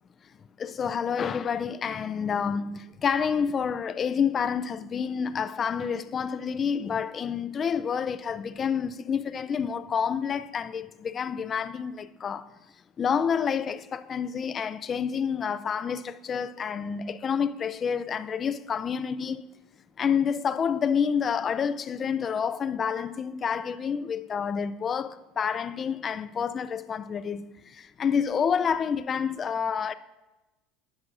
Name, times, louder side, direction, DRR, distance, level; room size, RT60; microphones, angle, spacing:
voice 1, 0.6-12.5 13.0-19.4 20.0-29.9, left 7 dB, 25° left, 0.3 m, -28 dB
17.0 x 6.2 x 2.5 m
cardioid pair, 140°, 0 cm